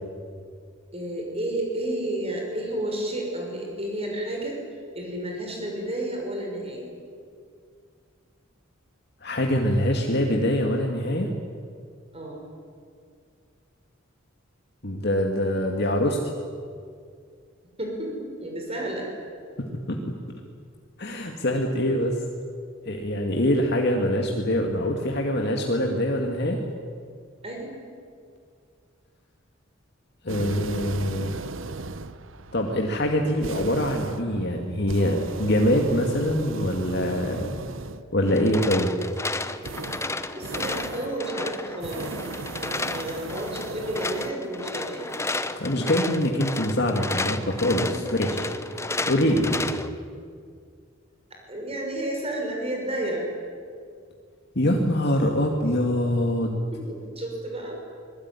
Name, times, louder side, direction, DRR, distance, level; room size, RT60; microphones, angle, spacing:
voice 1, 0.9-4.6 4.9-6.9 12.1-12.4 17.8-19.1 27.4-27.8 40.3-42.1 42.9-45.1 47.7-48.2 48.5-48.6 51.5-53.3 56.5-57.8, right 1 dB, 30° right, 0 dB, 5.8 m, -31 dB
voice 2, 9.2-11.3 14.8-16.3 19.6-20.0 21.0-22.2 22.9-26.6 30.2-31.5 32.5-37.5 38.1-38.9 45.5-47.8 48.2-48.4 49.1-49.7 54.6-56.6, left 1 dB, 55° left, 2 dB, 2.2 m, -24 dB
sound 1, 30.3-38.2 39.6-41.2 41.7-44.3, right 3 dB, 70° right, 1.0 m, -37 dB
sound 2, 38.3-49.9, left 2 dB, 15° left, 0.9 m, -32 dB
26.0 x 21.0 x 9.9 m, 2.2 s
head